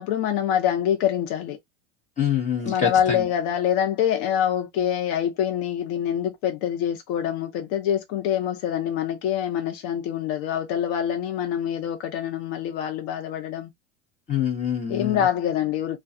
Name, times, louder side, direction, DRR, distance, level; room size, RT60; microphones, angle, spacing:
voice 1, 0.0-1.6 2.6-13.7 14.9-16.0, left 9 dB, 55° left, 0.7 m, -25 dB
voice 2, 2.2-3.3 14.3-15.3, left 8 dB, 20° left, 1.1 m, -25 dB
2.4 x 2.3 x 2.6 m
supercardioid pair, 140°, 33 cm